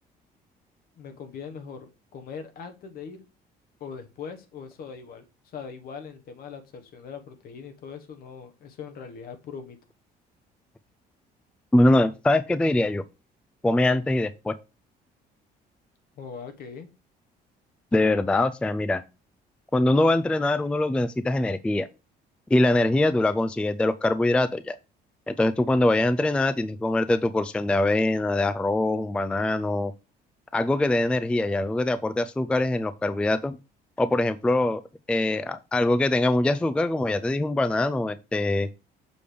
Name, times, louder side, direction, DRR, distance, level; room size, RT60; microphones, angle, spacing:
voice 1, 1.0-3.2 3.8-9.8 16.2-16.9, left 6 dB, 60° left, 7 dB, 1.3 m, -41 dB
voice 2, 11.7-13.0 13.6-14.5 17.9-19.0 19.7-21.9 22.5-24.8 25.3-29.9 30.5-33.6 34.0-34.8 35.1-38.7, left 2 dB, 5° left, 13 dB, 0.3 m, -23 dB
6.8 x 3.3 x 5.2 m, 0.29 s
cardioid pair, 110°, 17 cm